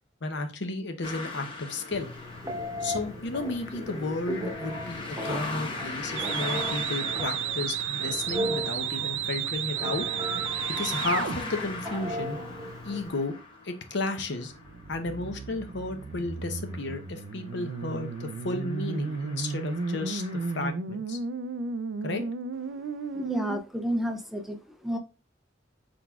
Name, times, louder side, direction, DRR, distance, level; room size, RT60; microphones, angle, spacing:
voice 1, 0.2-2.1 2.8-10.1 10.7-12.4 12.8-13.3 13.6-14.5 14.9-20.2 20.5-21.2 22.0-22.2, left 2 dB, 65° left, 7 dB, 0.7 m, -33 dB
sound 1, 1.0-20.7, left 3 dB, 25° left, 0.9 m, -41 dB
Telephone, 1.9-13.1, equal, 20° right, 0.9 m, -37 dB
sound 2, 6.2-11.4 14.5-23.6, right 6 dB, 70° right, 0.4 m, -33 dB
voice 2, 23.1-25.0, equal, ahead, 5 dB, 0.4 m, -31 dB
4.5 x 3.9 x 2.3 m, 0.31 s
head